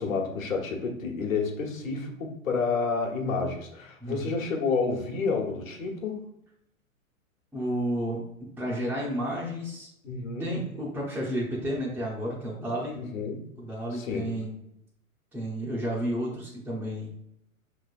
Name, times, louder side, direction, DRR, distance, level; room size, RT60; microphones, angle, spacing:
voice 1, 0.0-6.2 10.0-10.6 13.0-13.5 13.9-14.4, left 4 dB, 70° left, 0 dB, 1.2 m, -30 dB
voice 2, 7.5-9.9 10.4-13.0 13.6-14.6 15.3-17.1, equal, 5° right, -7 dB, 0.5 m, -31 dB
5.6 x 3.2 x 2.4 m, 0.78 s
figure-of-eight pair, 100°, 42 cm